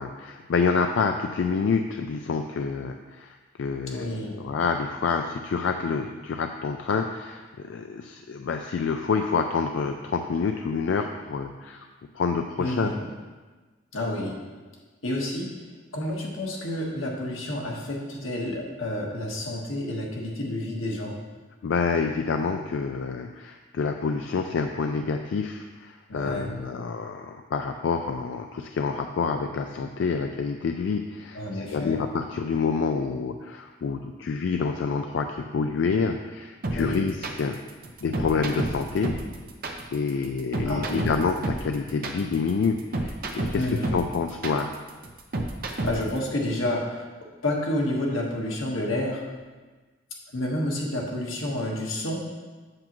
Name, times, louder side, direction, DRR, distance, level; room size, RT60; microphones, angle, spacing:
voice 1, 0.0-11.9 12.1-12.9 21.6-37.6 38.0-39.2 39.9-44.8, left 5 dB, 70° left, 5 dB, 0.3 m, -28 dB
voice 2, 3.9-4.4 12.6-13.1 13.9-14.4 15.0-15.5 15.9-21.2 26.1-26.5 31.3-32.0 36.7-37.1 40.6-41.1 43.6-44.0 45.7-47.1 47.4-49.2 50.3-52.2, left 1 dB, 90° left, -1 dB, 1.3 m, -29 dB
sound 1, 36.6-46.2, right 2 dB, 45° right, 0.6 m, -30 dB
7.8 x 7.1 x 3.0 m, 1.3 s
head